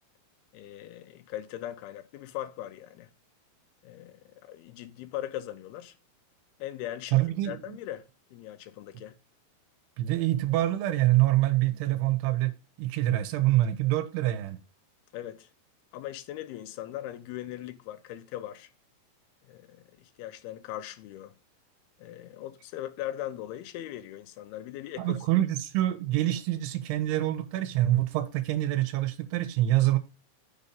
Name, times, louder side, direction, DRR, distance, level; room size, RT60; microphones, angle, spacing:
voice 1, 0.5-3.1 3.8-5.9 6.6-9.2 15.1-15.5 15.9-18.7 19.4-21.3 22.0-25.2, left 13 dB, 80° left, 2.6 m, -40 dB
voice 2, 7.1-7.8 8.9-9.0 10.0-14.6 25.0-30.0, right 15 dB, 90° right, 2.8 m, -26 dB
6.3 x 4.1 x 5.2 m
omnidirectional pair, 4.6 m